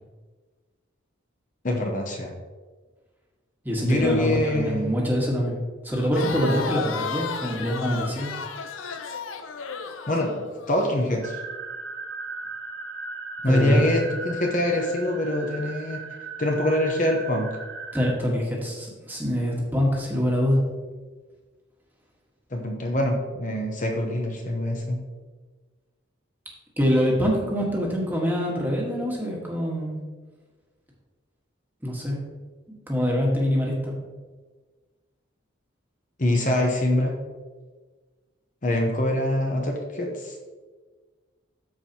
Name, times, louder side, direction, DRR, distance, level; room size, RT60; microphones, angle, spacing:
voice 1, 1.6-2.3 3.8-4.8 10.1-11.4 13.4-16.0 16.4-17.5 22.5-25.0 36.2-37.1 38.6-40.3, left 1 dB, 40° left, 1 dB, 1.0 m, -24 dB
voice 2, 3.6-5.6 5.8-8.3 13.5-13.8 17.9-20.6 26.8-30.0 31.8-32.2 32.9-33.9, equal, 10° right, -3 dB, 1.5 m, -24 dB
Crowd, 5.9-10.9, left 5 dB, 85° left, 0.6 m, -33 dB
sound 1, 11.2-18.2, right 3 dB, 60° right, 0.7 m, -37 dB
13.5 x 4.7 x 2.9 m, 1.4 s
head